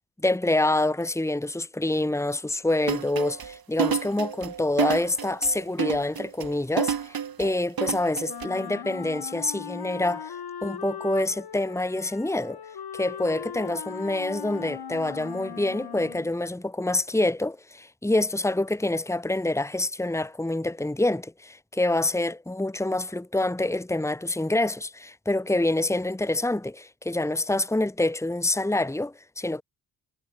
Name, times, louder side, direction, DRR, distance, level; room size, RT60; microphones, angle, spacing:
voice 1, 0.2-10.4 10.6-12.6 12.9-29.6, left 2 dB, 5° left, 2.1 m, -26 dB
sound 1, 2.8-8.5, right 8 dB, 50° right, 3.5 m, -29 dB
Wind instrument woodwind instrument, 8.3-16.4, left 7 dB, 50° left, 7.7 m, -39 dB
supercardioid pair, 60°, 47 cm